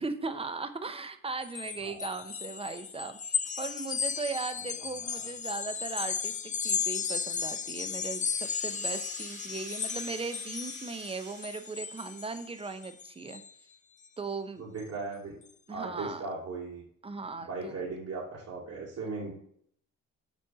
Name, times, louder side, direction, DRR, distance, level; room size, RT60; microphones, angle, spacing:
voice 1, 0.0-13.4 14.2-14.7 15.7-16.3 17.0-17.8, right 4 dB, 20° right, 10 dB, 0.8 m, -38 dB
sound 1, 1.4-13.5, left 6 dB, 25° left, 0.4 m, -35 dB
Rattle (instrument), 8.1-12.9, right 3 dB, 80° right, 2.4 m, -49 dB
voice 2, 14.6-15.3 15.7-16.8 17.3-19.3, right 3 dB, 55° right, -7 dB, 2.8 m, -38 dB
6.0 x 4.4 x 4.8 m, 0.64 s
cardioid pair, 90°, 30 cm